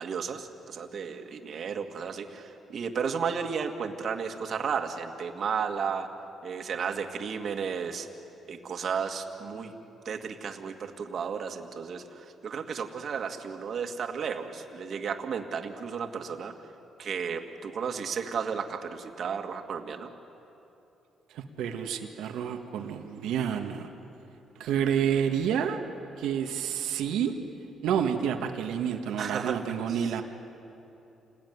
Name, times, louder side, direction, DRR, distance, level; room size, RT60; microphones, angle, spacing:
voice 1, 0.0-6.1 6.4-8.1 8.5-9.7 10.1-16.5 17.0-20.1 29.2-30.2, right 6 dB, 55° right, 5 dB, 2.1 m, -33 dB
voice 2, 21.3-23.9 24.6-25.8 26.2-27.3 27.8-30.2, right 8 dB, 85° right, 4 dB, 1.7 m, -29 dB
28.5 x 20.0 x 9.6 m, 3.0 s
cardioid pair, 90°, 0 cm